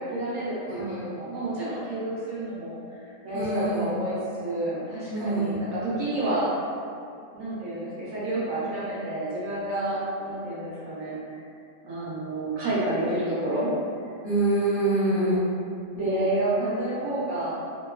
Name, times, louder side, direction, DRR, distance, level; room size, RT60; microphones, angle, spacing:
voice 1, 0.0-6.5 7.3-11.2 11.8-13.7 15.9-17.6, right 1 dB, 65° right, -8 dB, 0.9 m, -29 dB
voice 2, 0.7-1.0 3.3-3.9 5.1-5.6 14.2-15.4, right 2 dB, 60° left, -13 dB, 0.6 m, -25 dB
2.9 x 2.2 x 2.3 m, 2.5 s
omnidirectional pair, 1.7 m